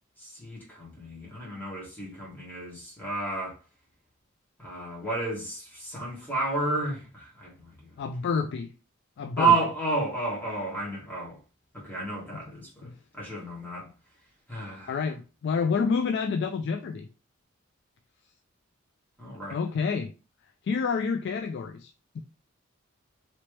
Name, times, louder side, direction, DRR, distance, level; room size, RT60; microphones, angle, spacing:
voice 1, 0.2-3.6 4.6-7.9 9.4-11.4 11.7-12.9 13.1-13.9 14.5-14.9 19.2-19.6, right 3 dB, 10° left, 1.6 m, -31 dB
voice 2, 8.0-8.7 9.2-9.5 12.8-12.9 14.6-17.1 19.5-20.1 20.6-22.2, left 5 dB, 60° left, 0.3 m, -29 dB
3.1 x 3.0 x 3.2 m
head